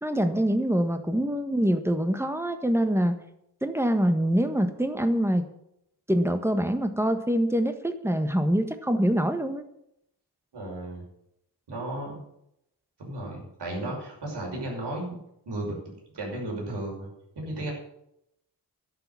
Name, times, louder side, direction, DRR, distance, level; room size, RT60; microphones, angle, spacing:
voice 1, 0.0-3.2 3.6-5.5 6.1-9.6 13.8-13.9, equal, 5° right, 8 dB, 1.5 m, -25 dB
voice 2, 10.5-11.0 11.7-12.2 13.0-15.2 15.5-15.8 16.1-17.1 17.4-17.7, right 1 dB, 80° right, -1 dB, 6.2 m, -34 dB
11.5 x 7.0 x 9.8 m, 0.78 s
wide cardioid pair, 95°, 41 cm